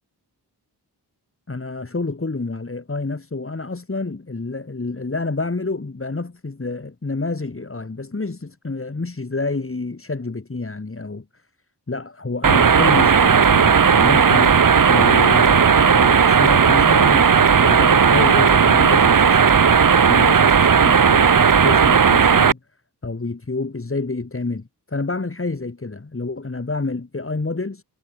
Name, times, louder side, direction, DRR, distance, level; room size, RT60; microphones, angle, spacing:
voice 1, 1.5-11.4 11.9-19.7 19.9-22.6 23.0-27.8, left 3 dB, 30° left, 1.7 m, -28 dB
sound 1, 12.4-22.5, right 6 dB, 50° right, 0.9 m, -14 dB
cardioid pair, 45°, 41 cm